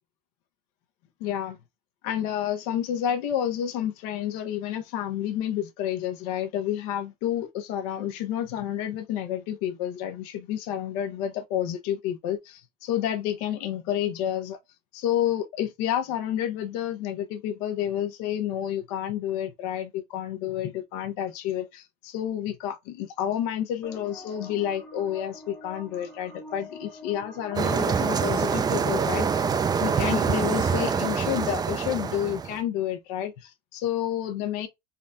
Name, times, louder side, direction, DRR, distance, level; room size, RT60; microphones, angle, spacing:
voice 1, 1.2-1.6 2.0-14.6 14.9-29.4 29.8-34.7, left 10 dB, 80° left, 0.9 m, -30 dB
sound 1, 23.8-31.2, left 2 dB, 5° left, 0.9 m, -45 dB
sound 2, 27.6-32.6, right 6 dB, 20° right, 0.4 m, -25 dB
4.0 x 2.3 x 3.8 m
supercardioid pair, 110°, 19 cm